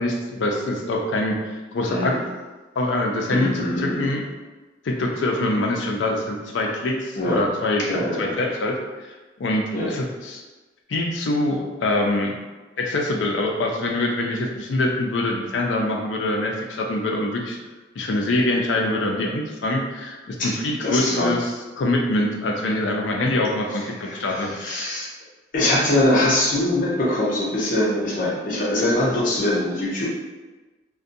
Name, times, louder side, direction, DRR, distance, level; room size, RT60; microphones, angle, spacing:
voice 1, 0.0-2.2 2.8-4.2 4.8-9.1 9.4-10.4 10.9-12.3 12.8-17.6 18.0-21.5 21.8-24.5, left 2 dB, 80° left, 1 dB, 0.4 m, -24 dB
voice 2, 1.9-2.2 3.3-4.1 7.2-7.4 7.8-8.3 9.7-9.9 20.4-20.5 20.8-21.3 23.7-25.1 25.5-30.1, left 1 dB, 45° left, -5 dB, 0.7 m, -23 dB
2.5 x 2.2 x 2.6 m, 1.2 s
head